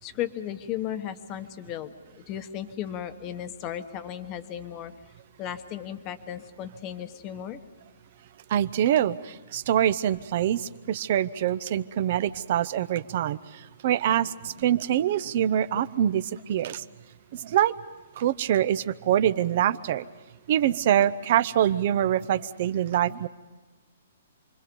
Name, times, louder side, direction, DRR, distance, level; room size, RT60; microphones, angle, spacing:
voice 1, 0.0-4.9 5.4-7.6, left 10 dB, 20° left, 9 dB, 1.2 m, -35 dB
voice 2, 8.5-16.8 17.3-17.7 18.2-20.0 20.5-23.3, right 11 dB, 40° right, 14 dB, 0.7 m, -25 dB
28.0 x 22.5 x 5.3 m, 1.3 s
hypercardioid pair, 170°, 0 cm